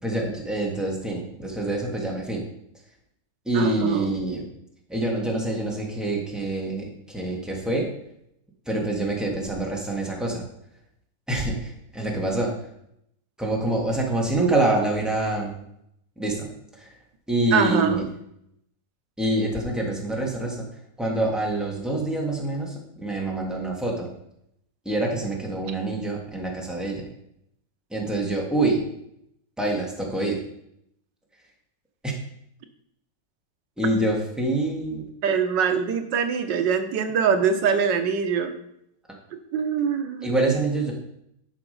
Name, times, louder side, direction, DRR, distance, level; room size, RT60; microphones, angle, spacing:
voice 1, 0.0-2.4 3.5-4.4 4.9-7.9 8.7-10.4 11.3-12.5 13.4-15.6 16.2-16.5 16.8-16.9 17.3-18.0 19.2-20.6 21.0-24.1 24.8-27.1 27.9-28.8 29.6-30.4 32.0-32.1 33.8-35.0 40.2-40.9, right 2 dB, ahead, -2 dB, 2.2 m, -26 dB
voice 2, 3.5-4.2 17.5-18.0 35.2-38.5 39.5-40.3, right 6 dB, 90° right, 8 dB, 1.6 m, -23 dB
11.0 x 5.8 x 5.4 m, 0.76 s
omnidirectional pair, 1.9 m